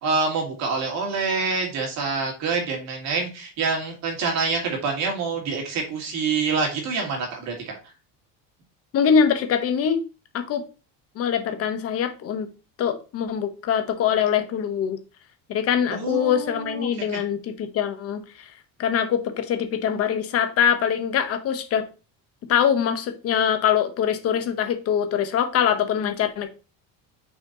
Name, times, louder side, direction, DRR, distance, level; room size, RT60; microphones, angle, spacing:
voice 1, 0.0-7.7 15.9-17.2, right 4 dB, 45° right, 1 dB, 2.6 m, -26 dB
voice 2, 8.9-10.0 10.3-10.6 11.1-12.5 12.8-15.0 15.5-18.5 18.8-21.8 22.5-26.5, left 8 dB, 40° left, 8 dB, 1.1 m, -23 dB
6.2 x 4.2 x 3.9 m, 0.33 s
cardioid pair, 170°, 37 cm